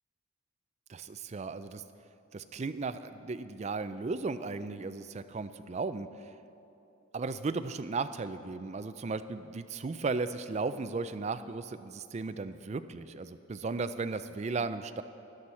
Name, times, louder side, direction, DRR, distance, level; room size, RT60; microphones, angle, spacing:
voice 1, 0.9-1.8 2.3-6.1 7.1-15.0, right 4 dB, 30° right, 12 dB, 0.3 m, -35 dB
13.0 x 11.0 x 4.2 m, 3.0 s
head